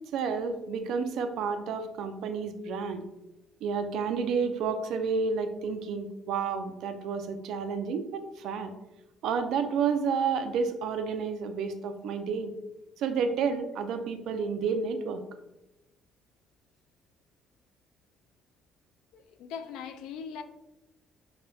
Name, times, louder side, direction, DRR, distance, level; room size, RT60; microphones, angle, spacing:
voice 1, 0.1-3.0 3.6-8.7 9.2-12.5 13.0-15.2, right 5 dB, 70° right, 0.3 m, -30 dB
voice 2, 19.1-20.4, left 7 dB, 85° left, 0.3 m, -40 dB
5.3 x 2.1 x 2.3 m
cardioid pair, 125°, 0 cm